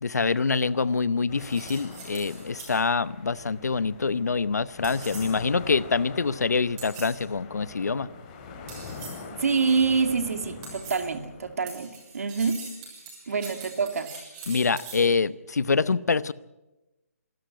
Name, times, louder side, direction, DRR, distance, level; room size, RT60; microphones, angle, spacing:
voice 1, 0.0-8.1 14.5-16.3, left 4 dB, 90° left, 18 dB, 0.9 m, -25 dB
sound 1, 1.3-11.6, left 4 dB, 25° left, 3.0 m, -43 dB
sound 2, 1.4-2.8 4.8-5.4 6.8-7.2 8.7-9.3 10.6-11.2 11.7-15.1, right 4 dB, 20° right, 7.0 m, -43 dB
voice 2, 9.3-12.7 13.3-14.1, right 5 dB, 65° right, 7 dB, 2.6 m, -26 dB
27.0 x 13.0 x 9.1 m, 1.0 s
hypercardioid pair, 160°, 9 cm